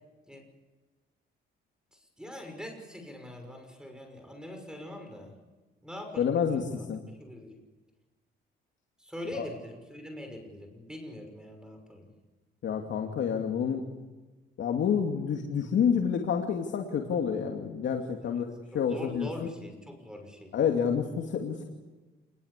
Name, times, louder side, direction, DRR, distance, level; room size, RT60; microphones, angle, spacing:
voice 1, 1.9-5.3 5.8-6.8 7.2-7.6 9.0-12.1 18.2-18.4 18.7-20.5, left 1 dB, 5° right, 4 dB, 6.1 m, -43 dB
voice 2, 6.2-7.0 9.3-9.5 12.6-13.8 14.6-18.5 18.7-19.5 20.5-21.6, left 7 dB, 70° left, 3 dB, 2.8 m, -28 dB
28.5 x 21.0 x 8.5 m, 1.2 s
cardioid pair, 90°, 20 cm